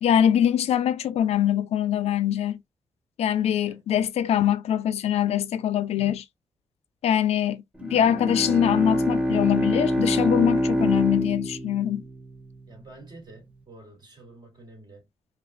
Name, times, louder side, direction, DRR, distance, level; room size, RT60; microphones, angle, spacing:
voice 1, 0.0-2.6 3.2-6.2 7.0-12.0, left 10 dB, 85° left, 0.5 m, -23 dB
Bowed string instrument, 7.8-12.6, equal, 10° right, 0.8 m, -25 dB
voice 2, 12.7-15.1, right 2 dB, 45° right, 2.8 m, -48 dB
5.0 x 2.6 x 2.4 m
cardioid pair, 95°, 10 cm